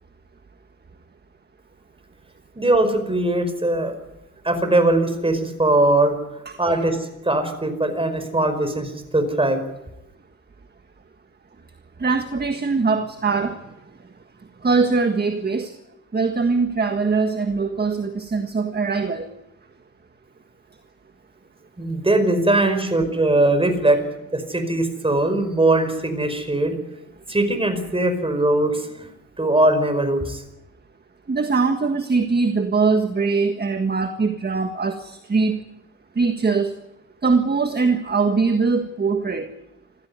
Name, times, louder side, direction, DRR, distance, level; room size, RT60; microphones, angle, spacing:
voice 1, 2.5-3.9 4.4-6.1 6.6-9.6 21.8-24.0 24.3-26.7 27.3-29.1 29.4-30.4, right 2 dB, 20° right, 8 dB, 5.0 m, -20 dB
voice 2, 12.0-13.6 14.6-15.7 16.1-19.3 31.3-35.6 36.2-36.7 37.2-39.5, right 4 dB, 35° right, 7 dB, 1.7 m, -21 dB
27.0 x 15.5 x 9.6 m, 0.92 s
wide cardioid pair, 110°, 30 cm